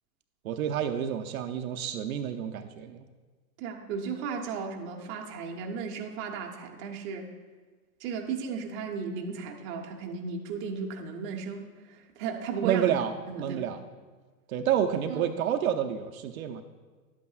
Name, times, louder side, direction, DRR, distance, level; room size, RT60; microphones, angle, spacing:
voice 1, 0.4-3.0 12.6-13.8 14.5-16.6, right 9 dB, 60° right, 5 dB, 0.6 m, -29 dB
voice 2, 3.6-7.3 8.0-12.9 13.3-13.6 15.1-15.2, right 5 dB, 25° right, 2 dB, 0.7 m, -35 dB
11.5 x 8.4 x 2.4 m, 1.4 s
hypercardioid pair, 135°, 48 cm